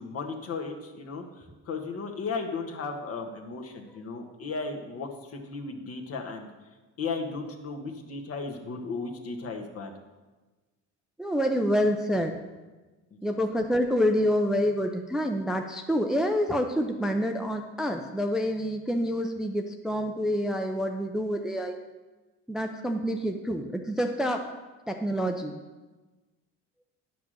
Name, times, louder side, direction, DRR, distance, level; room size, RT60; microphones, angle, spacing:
voice 1, 0.0-6.5 7.0-9.9 13.1-13.3, left 4 dB, 50° left, 3 dB, 1.4 m, -35 dB
voice 2, 11.2-12.4 13.2-21.8 22.5-24.5 24.9-25.6, equal, ahead, 4 dB, 0.5 m, -27 dB
10.5 x 6.0 x 6.3 m, 1.2 s
cardioid pair, 130°, 30 cm